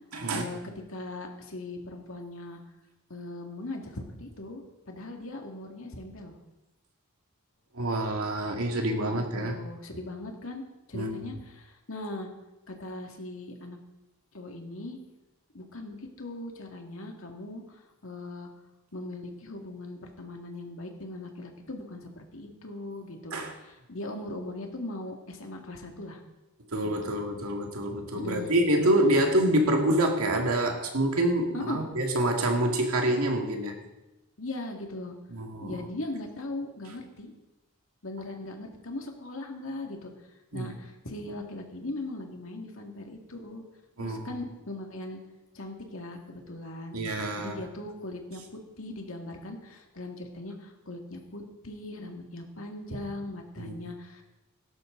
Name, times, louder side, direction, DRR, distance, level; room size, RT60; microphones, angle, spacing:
voice 1, 0.1-0.4 7.7-9.6 10.9-11.3 23.3-23.5 26.7-33.8 35.3-35.9 40.5-40.7 44.0-44.3 46.9-47.6 53.6-53.8, right 1 dB, 85° right, 2 dB, 2.2 m, -27 dB
voice 2, 0.9-2.6 3.1-6.3 9.1-10.6 10.9-12.3 12.7-13.8 14.3-15.0 15.5-18.5 18.9-26.2 26.8-27.1 28.1-28.9 31.5-31.9 34.4-35.2 35.6-37.3 38.0-40.1 40.5-43.6 44.0-45.2 45.5-47.1 47.4-54.2, left 2 dB, 70° left, 2 dB, 2.3 m, -39 dB
17.5 x 12.5 x 3.9 m, 1.0 s
head